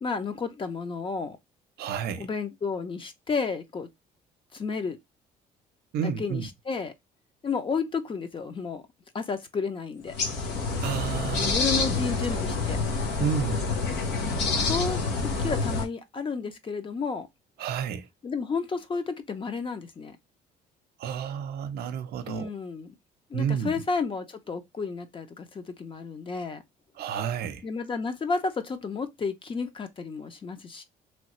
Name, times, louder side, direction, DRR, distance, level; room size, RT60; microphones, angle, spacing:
voice 1, 0.0-1.4 2.2-3.9 4.5-5.0 6.0-6.9 7.4-8.8 9.1-10.1 11.4-12.8 14.2-15.0 15.4-17.3 18.2-20.2 22.3-22.9 23.3-26.6 27.6-30.8, left 5 dB, 30° left, 0.6 m, -32 dB
voice 2, 1.8-2.3 5.9-6.5 10.8-11.5 11.9-12.0 12.3-12.4 13.2-13.8 17.6-18.1 21.0-22.5 23.3-23.7 27.0-27.6, right 8 dB, 70° right, 0.6 m, -31 dB
sound 1, 10.1-15.9, left 3 dB, 85° left, 0.9 m, -27 dB
3.1 x 2.3 x 2.9 m
cardioid pair, 110°, 17 cm